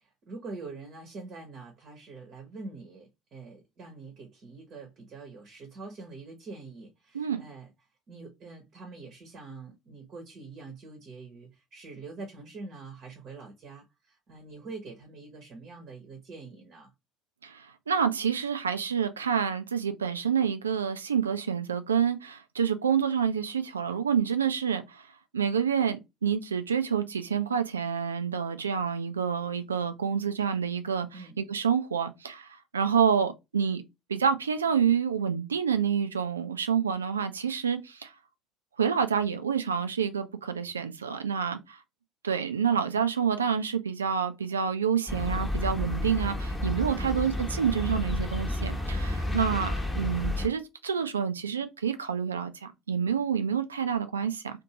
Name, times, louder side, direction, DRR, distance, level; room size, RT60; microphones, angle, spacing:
voice 1, 0.2-7.7 8.1-16.9 31.1-31.4 47.0-47.2, right 3 dB, 45° right, 0.9 m, -44 dB
voice 2, 17.4-25.1 25.3-33.8 34.1-38.1 38.8-41.8 42.2-54.6, right 7 dB, 80° right, 0.3 m, -28 dB
sound 1, 45.1-50.5, left 1 dB, 10° left, 0.9 m, -31 dB
2.6 x 2.5 x 2.8 m
figure-of-eight pair, 60°, 0 cm